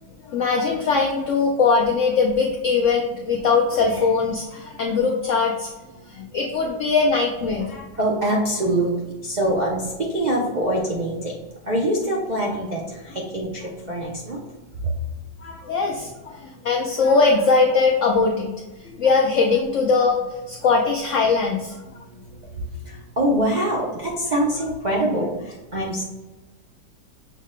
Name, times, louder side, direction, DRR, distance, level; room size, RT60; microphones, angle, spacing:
voice 1, 0.2-5.7 6.1-7.8 15.4-18.5 18.8-21.8, left 4 dB, 80° left, 0 dB, 0.6 m, -21 dB
voice 2, 8.0-11.3 11.6-14.4 14.8-15.0 22.0-26.0, right 1 dB, 80° right, -3 dB, 0.4 m, -24 dB
6.3 x 2.1 x 3.6 m, 1.1 s
omnidirectional pair, 1.9 m